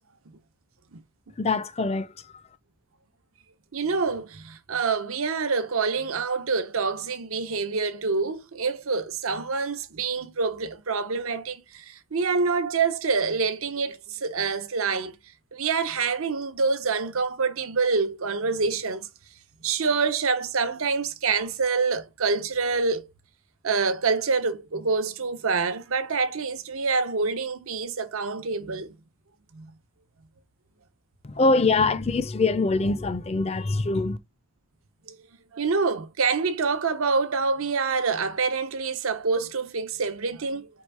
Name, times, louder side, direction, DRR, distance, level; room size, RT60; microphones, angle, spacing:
voice 1, 1.4-2.1 31.2-34.2, left 3 dB, 30° left, 0.4 m, -23 dB
voice 2, 3.7-15.1 15.5-19.1 19.6-23.1 23.6-28.9 29.5-29.7 35.1-35.2 35.5-40.7, right 4 dB, 85° right, 0.8 m, -26 dB
4.7 x 3.4 x 3.2 m
head